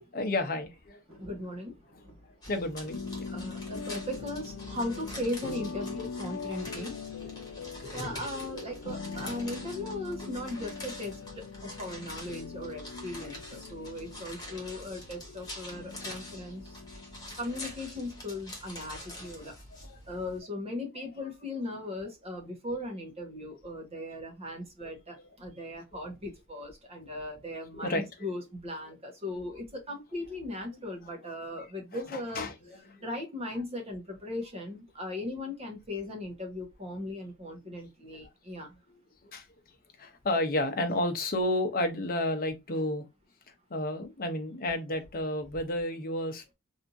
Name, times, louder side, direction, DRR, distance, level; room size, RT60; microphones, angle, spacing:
voice 1, 0.1-1.0 2.5-3.3 7.2-7.3 7.7-8.4 10.2-10.3 19.2-19.3 19.7-20.0 24.8-25.2 25.9-26.0 27.7-28.1 31.9-33.1 38.9-39.5 40.0-43.1 43.7-46.4, left 1 dB, 45° left, 0.8 m, -32 dB
sound 1, 1.1-7.3 7.7-8.3 9.6-10.0 10.2-10.3 10.6-10.9 11.8-12.7 13.1-13.2, equal, 60° right, 2.0 m, -56 dB
voice 2, 1.2-1.8 3.3-7.0 7.9-16.8 17.4-19.6 20.0-32.4 33.0-38.8, left 1 dB, 30° right, 1.2 m, -38 dB
sound 2, 2.4-20.4, left 1 dB, 20° left, 1.4 m, -46 dB
sound 3, 2.9-18.0, left 5 dB, 65° left, 0.4 m, -42 dB
3.4 x 2.8 x 2.6 m
head